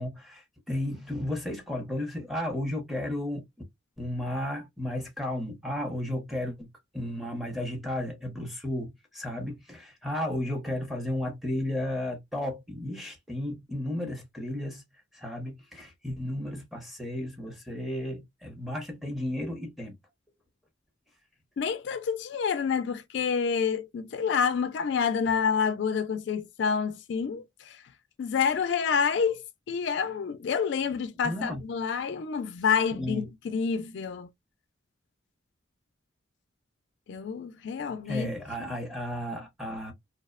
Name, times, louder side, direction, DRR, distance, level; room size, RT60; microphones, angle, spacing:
voice 1, 0.0-3.4 4.0-14.8 15.1-19.9 31.2-31.6 33.0-33.2 38.0-39.9, left 1 dB, ahead, 0.7 m, -33 dB
voice 2, 21.6-27.8 28.2-34.3 37.1-38.3, left 6 dB, 65° left, 0.3 m, -28 dB
2.7 x 2.0 x 2.2 m
head